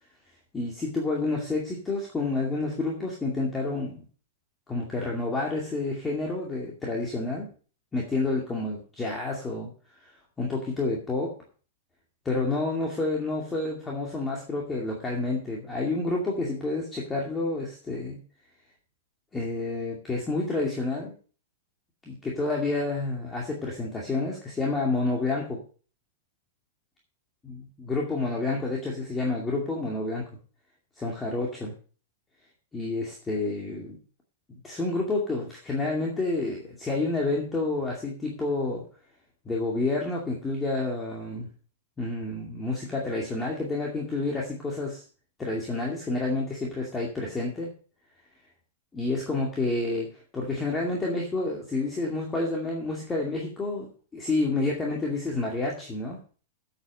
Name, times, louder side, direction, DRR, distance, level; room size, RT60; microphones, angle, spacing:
voice 1, 0.5-4.0 4.7-7.5 7.9-9.7 10.4-11.3 12.2-18.2 19.3-21.1 22.1-25.6 27.5-27.6 27.9-30.2 31.0-31.7 32.7-34.0 34.6-38.8 39.5-41.5 42.0-45.0 45.4-47.7 48.9-56.2, left 2 dB, 10° left, -2 dB, 2.4 m, -29 dB
8.6 x 8.2 x 6.6 m, 0.40 s
supercardioid pair, 150°, 0 cm